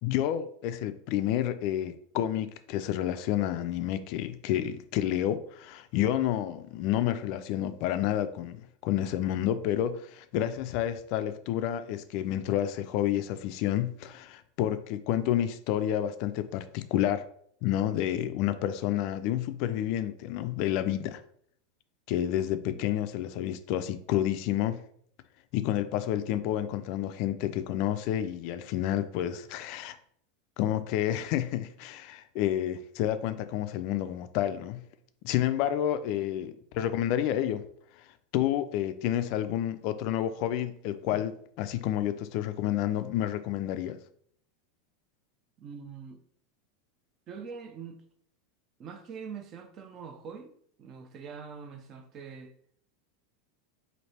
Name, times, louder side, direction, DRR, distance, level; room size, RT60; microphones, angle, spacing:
voice 1, 0.0-17.2 17.6-21.2 22.1-24.8 25.5-30.0 30.6-34.8 35.2-37.6 38.3-44.0, left 11 dB, 50° left, 0.3 m, -29 dB
voice 2, 45.6-46.2 47.3-48.0 48.8-50.5 50.8-52.5, right 6 dB, 30° right, 0.4 m, -44 dB
3.2 x 2.6 x 4.2 m
supercardioid pair, 150°, 0 cm